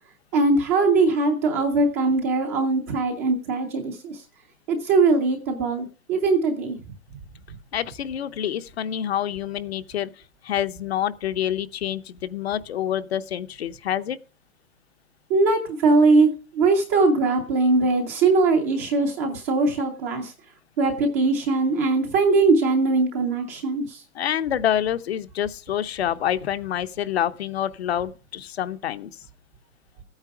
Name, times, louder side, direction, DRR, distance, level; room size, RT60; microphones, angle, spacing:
voice 1, 0.3-4.2 4.7-6.8 15.3-20.3 20.8-24.0, right 3 dB, 10° right, 0.5 m, -21 dB
voice 2, 7.7-10.1 10.4-14.2 24.1-29.1, left 10 dB, 50° left, 0.8 m, -27 dB
13.5 x 9.0 x 4.7 m
hypercardioid pair, 160°, 41 cm